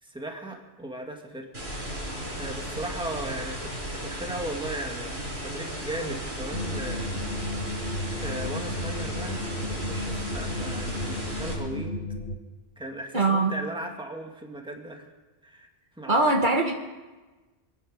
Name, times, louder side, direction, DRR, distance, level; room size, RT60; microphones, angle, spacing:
voice 1, 0.0-1.5 2.3-7.0 8.2-11.9 12.8-15.1 15.4-15.7 16.0-16.4, right 1 dB, 5° right, 1 dB, 1.8 m, -37 dB
sound 1, 1.5-11.5, equal, 75° right, 5.7 m, -35 dB
sound 2, 6.5-12.4, left 1 dB, 70° left, 1.7 m, -33 dB
voice 2, 13.1-13.5 16.1-16.7, right 2 dB, 50° right, 1 dB, 1.5 m, -21 dB
26.5 x 9.6 x 5.4 m, 1.2 s
omnidirectional pair, 1.1 m